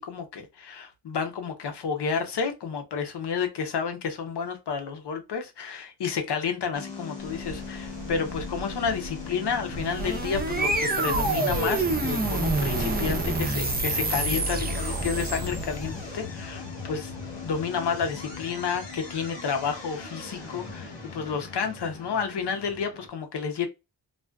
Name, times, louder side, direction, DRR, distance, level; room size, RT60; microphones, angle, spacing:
voice 1, 0.0-23.7, left 6 dB, 70° left, 0.7 m, -31 dB
sound 1, 6.7-23.1, left 4 dB, 90° left, 1.1 m, -39 dB
Waves surf, 7.2-14.5, right 2 dB, 75° right, 0.5 m, -38 dB
sound 2, 9.6-15.9, right 3 dB, 20° right, 0.5 m, -28 dB
2.5 x 2.3 x 2.2 m
wide cardioid pair, 95°, 42 cm